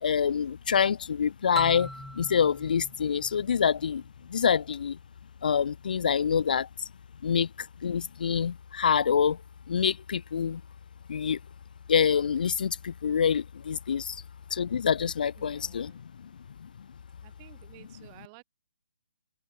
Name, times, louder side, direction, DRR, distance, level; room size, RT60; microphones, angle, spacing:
voice 1, 0.0-4.0 4.3-5.0 5.4-6.9 7.2-9.4 9.7-10.6 11.1-11.4 11.9-14.2 14.5-16.3 16.6-16.9, left 7 dB, 55° left, 0.4 m, -26 dB
sound 1, 1.6-4.3, equal, ahead, 1.8 m, -42 dB
voice 2, 15.4-16.0 17.2-18.4, right 30 dB, 20° right, 2.9 m, -53 dB
hypercardioid pair, 175°, 6 cm